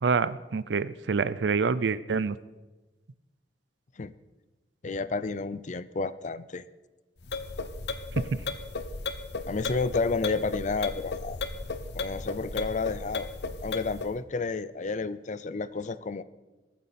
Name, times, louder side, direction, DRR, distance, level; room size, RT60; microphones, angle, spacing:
voice 1, 0.0-2.4 8.1-8.2, right 5 dB, 80° right, 17 dB, 0.5 m, -26 dB
voice 2, 4.8-6.6 9.5-11.4 11.9-13.3 13.6-16.2, left 4 dB, 45° left, 16 dB, 0.5 m, -31 dB
sound 1, 7.2-14.1, left 3 dB, 70° left, 0.9 m, -35 dB
21.0 x 9.4 x 4.2 m, 1.1 s
head